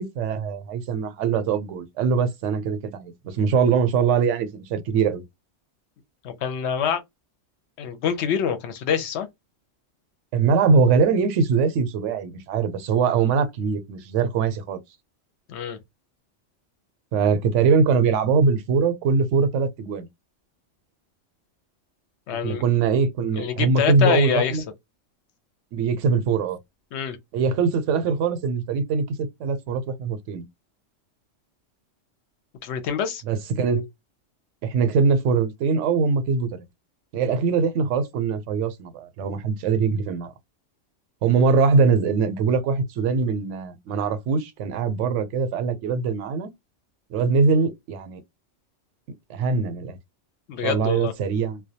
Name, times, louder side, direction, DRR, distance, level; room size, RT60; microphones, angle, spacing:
voice 1, 0.0-5.2 10.3-14.8 17.1-20.1 22.4-24.6 25.7-26.6 27.3-30.4 33.2-33.9 34.6-36.5 37.1-40.3 41.2-46.5 47.1-48.2 49.3-50.0 50.6-51.6, right 5 dB, 75° right, 0.9 m, -22 dB
voice 2, 6.2-7.0 7.8-9.3 15.5-15.8 22.3-22.6 23.3-24.6 26.9-27.2 32.6-33.2 50.5-51.1, left 8 dB, 70° left, 0.8 m, -25 dB
2.2 x 2.1 x 2.7 m
omnidirectional pair, 1.3 m